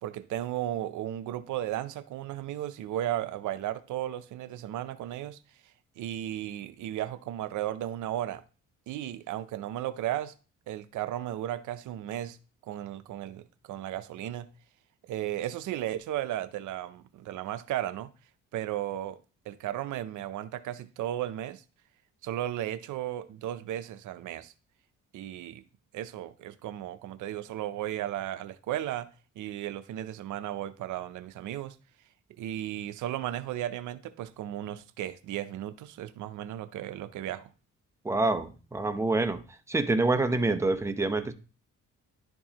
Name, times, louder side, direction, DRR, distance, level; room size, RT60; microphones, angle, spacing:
voice 1, 0.0-5.4 6.0-8.4 8.9-10.3 10.7-12.4 12.7-14.5 15.1-18.1 18.5-19.2 19.5-21.6 22.2-24.5 25.1-25.6 25.9-29.1 29.4-31.8 32.4-37.5, right 12 dB, 80° right, 0.6 m, -35 dB
voice 2, 38.0-39.4 39.7-41.3, right 2 dB, 10° right, 0.7 m, -26 dB
11.0 x 4.6 x 2.9 m
cardioid pair, 90°, 30 cm